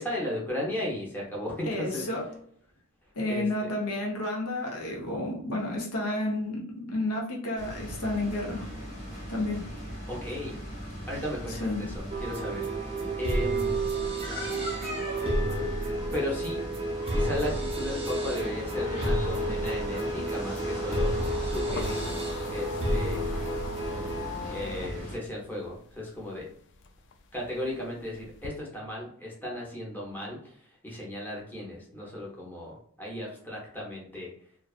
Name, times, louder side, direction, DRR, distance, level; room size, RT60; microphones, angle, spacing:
voice 1, 0.0-2.0 3.2-3.7 10.1-10.6 11.1-12.7 13.2-13.7 16.1-16.6 17.1-21.1 21.4-22.1 22.5-23.2 24.5-26.5 27.3-30.6 30.8-34.3, left 1 dB, 10° left, -4 dB, 0.7 m, -35 dB
voice 2, 1.7-2.2 3.2-8.7 9.3-9.6 11.5-11.8, left 1 dB, 75° left, 0 dB, 0.8 m, -31 dB
sound 1, 7.6-25.2, equal, 35° left, 0.9 m, -38 dB
sound 2, 12.1-24.3, right 1 dB, 25° right, 0.5 m, -31 dB
sound 3, 19.3-26.4 26.7-28.5, left 3 dB, 55° left, 0.3 m, -39 dB
2.5 x 2.3 x 2.3 m, 0.63 s
head